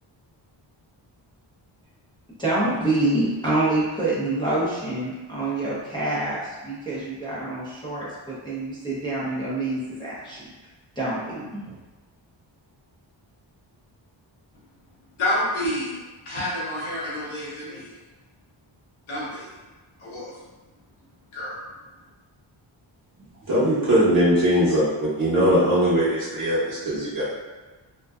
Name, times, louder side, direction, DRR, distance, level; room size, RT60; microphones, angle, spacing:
voice 1, 2.4-10.4 11.0-11.6, right 2 dB, 10° left, -10 dB, 0.6 m, -26 dB
voice 2, 15.2-16.0 16.2-17.9 19.1-19.5 20.0-20.3 21.3-21.5, left 1 dB, 85° left, -9 dB, 0.9 m, -28 dB
voice 3, 23.5-27.2, equal, 45° right, -10 dB, 0.9 m, -20 dB
2.5 x 2.2 x 2.3 m, 1.2 s
cardioid pair, 80°, 47 cm